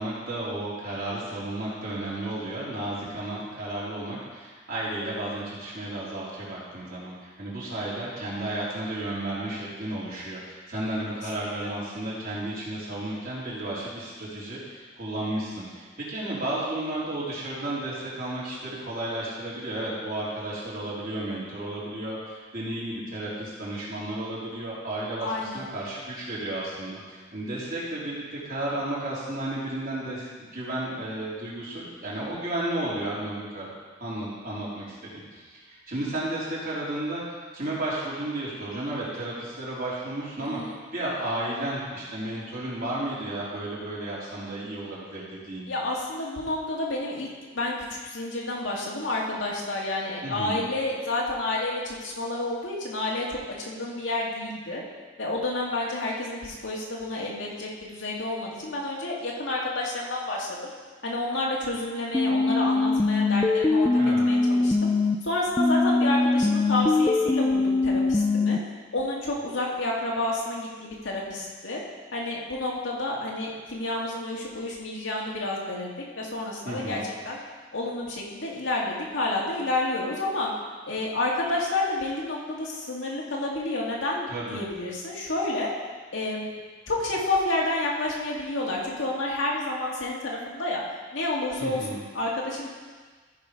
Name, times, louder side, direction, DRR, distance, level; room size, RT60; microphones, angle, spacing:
voice 1, 0.0-33.7 34.0-37.2 37.5-40.6 40.9-45.7 50.2-50.6 64.0-64.2 76.6-77.0 84.3-84.6 91.6-92.0, right 1 dB, 50° right, -7 dB, 3.2 m, -33 dB
voice 2, 11.3-11.7 25.2-25.7 40.4-40.8 45.7-47.3 47.5-54.8 55.2-60.7 61.0-64.9 65.2-68.6 68.9-71.8 72.1-77.0 77.3-77.4 77.7-80.5 80.9-85.7 86.1-86.5 86.9-90.8 91.1-92.7, left 2 dB, 85° left, -3 dB, 2.0 m, -30 dB
sound 1, 62.1-65.2 65.6-68.6, left 3 dB, 10° left, 0.3 m, -22 dB
14.0 x 5.1 x 5.1 m, 1.4 s
head